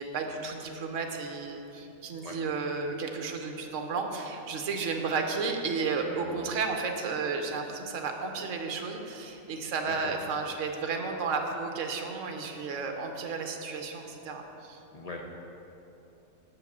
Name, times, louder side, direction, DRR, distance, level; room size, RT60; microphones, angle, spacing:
voice 1, 0.0-14.8, right 4 dB, 65° right, 4 dB, 1.1 m, -33 dB
voice 2, 6.0-6.4 9.8-10.2 14.9-15.3, left 2 dB, 50° left, 0 dB, 0.4 m, -42 dB
6.7 x 5.1 x 7.1 m, 2.9 s
omnidirectional pair, 1.4 m